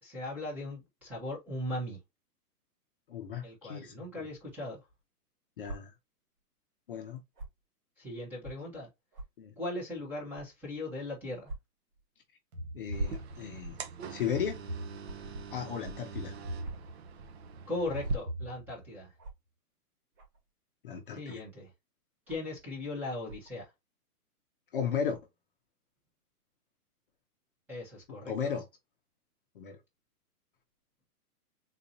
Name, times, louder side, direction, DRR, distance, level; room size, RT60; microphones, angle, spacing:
voice 1, 0.0-2.0 3.4-4.8 8.0-8.9 9.6-11.5 17.7-19.1 21.1-21.7 22.3-23.6 27.7-28.3, left 1 dB, 5° right, 0.7 m, -38 dB
voice 2, 3.1-4.3 5.6-5.9 6.9-7.2 9.4-9.5 12.7-13.8 14.1-14.6 15.5-16.3 20.8-21.4 24.7-25.2 28.3-28.6 29.6-29.8, left 7 dB, 35° left, 0.6 m, -35 dB
sound 1, 5.6-5.8 7.3-7.6 8.3-8.4 9.1-9.2 10.3-10.4 11.4-11.6 11.9-12.0 13.0-13.3 15.0-15.2 16.4-16.9 18.0-18.1 19.2-19.4 20.1-20.4 21.2-21.5 22.3-22.5 23.2-23.5, right 2 dB, 80° right, 2.3 m, -44 dB
sound 2, 12.5-13.7 14.3-15.5 16.1-17.3 17.9-19.1, right 1 dB, 65° right, 1.2 m, -42 dB
sound 3, 12.9-18.2, right 3 dB, 45° right, 0.5 m, -40 dB
3.9 x 2.8 x 2.5 m
hypercardioid pair, 160°, 47 cm